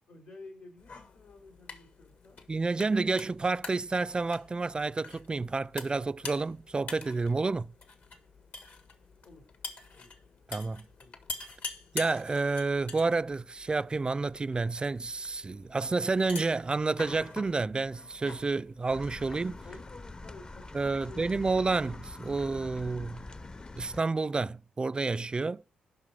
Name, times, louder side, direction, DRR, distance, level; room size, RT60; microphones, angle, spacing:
voice 1, 0.1-2.4 9.2-9.5 9.9-10.1 11.0-11.2 19.6-21.5, left 2 dB, 90° left, 3.6 m, -51 dB
sound 1, 0.8-19.6, left 3 dB, 70° left, 1.6 m, -46 dB
voice 2, 2.5-7.7 10.5-10.9 11.9-19.6 20.7-23.2 23.8-25.6, right 3 dB, 30° right, 0.4 m, -30 dB
sound 2, 18.9-24.0, left 2 dB, 25° left, 0.5 m, -44 dB
7.6 x 5.8 x 7.4 m
supercardioid pair, 60°, 3 cm